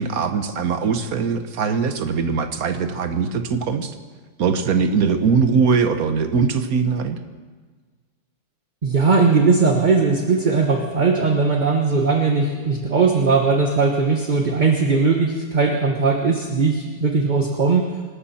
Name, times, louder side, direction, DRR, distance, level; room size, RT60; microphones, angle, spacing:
voice 1, 0.0-3.9 4.4-7.2, right 5 dB, 55° right, 9 dB, 1.3 m, -21 dB
voice 2, 8.8-17.8, right 4 dB, 30° right, 2 dB, 1.0 m, -19 dB
26.5 x 12.5 x 4.3 m, 1.5 s
omnidirectional pair, 2.1 m